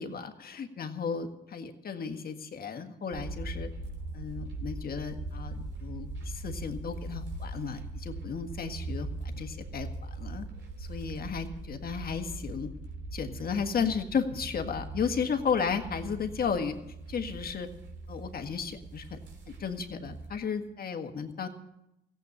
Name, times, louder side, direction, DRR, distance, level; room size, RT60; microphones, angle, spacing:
voice 1, 0.0-3.7 4.1-10.5 10.8-12.7 13.1-16.7 17.1-17.7 18.1-19.2 19.5-21.5, left 6 dB, 50° left, 6 dB, 1.7 m, -34 dB
sound 1, 3.1-20.4, right 2 dB, 65° right, 3.4 m, -40 dB
15.5 x 8.1 x 9.8 m, 0.87 s
cardioid pair, 90°, 20 cm